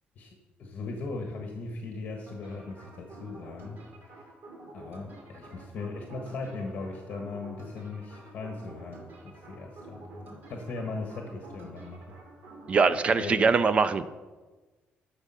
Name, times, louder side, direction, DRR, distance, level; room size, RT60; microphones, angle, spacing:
voice 1, 0.2-3.8 4.2-4.3 4.7-12.1 13.1-13.5, left 3 dB, 45° left, 2 dB, 1.4 m, -38 dB
sound 1, 2.3-12.9, right 2 dB, 60° right, 2.5 m, -49 dB
voice 2, 12.7-14.1, right 5 dB, 30° right, 14 dB, 0.4 m, -22 dB
11.5 x 7.0 x 5.6 m, 1.3 s
cardioid pair, 160°, 4 cm